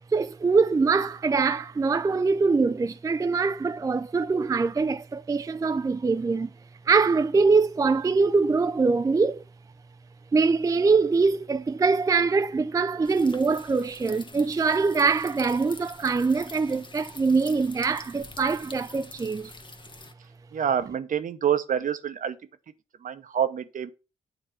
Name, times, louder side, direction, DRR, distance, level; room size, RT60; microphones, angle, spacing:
voice 1, 0.1-6.5 6.9-9.4 10.3-19.5, right 4 dB, 20° right, 0.4 m, -23 dB
sound 1, 13.0-20.1, left 3 dB, 30° left, 1.0 m, -46 dB
voice 2, 20.5-22.4 23.0-23.9, right 8 dB, 55° right, 0.9 m, -27 dB
9.1 x 3.3 x 4.9 m
hypercardioid pair, 40°, 16 cm